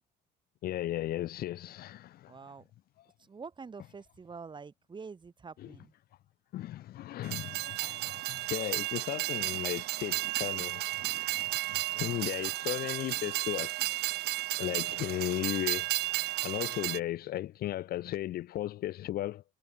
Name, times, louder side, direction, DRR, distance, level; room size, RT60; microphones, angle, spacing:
voice 1, 0.6-2.3 5.6-5.8 6.5-13.7 14.6-15.9 16.4-19.4, left 14 dB, 65° left, 0.9 m, -36 dB
voice 2, 2.3-2.6 3.2-5.9 11.9-12.3, right 5 dB, 25° right, 3.0 m, -47 dB
Train, 7.2-17.0, right 18 dB, 75° right, 0.5 m, -33 dB
cardioid pair, 110°, 17 cm